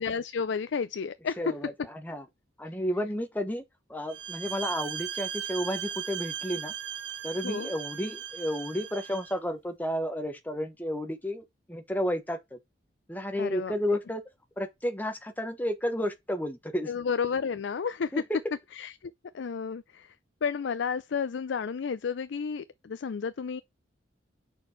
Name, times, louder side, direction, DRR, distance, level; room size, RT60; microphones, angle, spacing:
voice 1, 0.0-1.4 7.4-7.7 13.4-14.0 16.9-18.2 18.7-20.2 20.4-23.6, left 6 dB, 70° left, 0.4 m, -32 dB
voice 2, 1.4-2.2 2.6-3.6 3.9-6.7 7.2-12.6 13.1-14.2 14.6-16.9 18.1-18.4, equal, 10° left, 1.1 m, -32 dB
sound 1, 4.1-9.4, right 9 dB, 70° right, 1.3 m, -37 dB
6.1 x 4.6 x 4.4 m
head